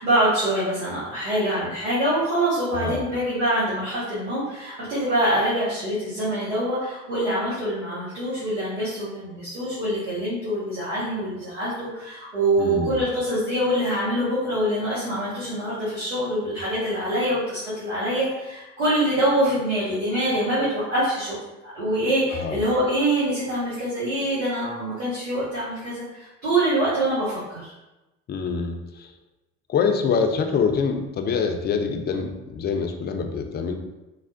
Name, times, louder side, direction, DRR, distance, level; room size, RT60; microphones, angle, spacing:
voice 1, 0.0-21.3 21.6-27.7, right 1 dB, 90° right, -9 dB, 0.8 m, -25 dB
voice 2, 2.7-3.0 12.6-12.9 22.3-22.6 28.3-29.1 29.7-33.7, left 5 dB, 30° left, 5 dB, 0.4 m, -25 dB
3.3 x 2.1 x 2.5 m, 1.0 s
hypercardioid pair, 55°, 37 cm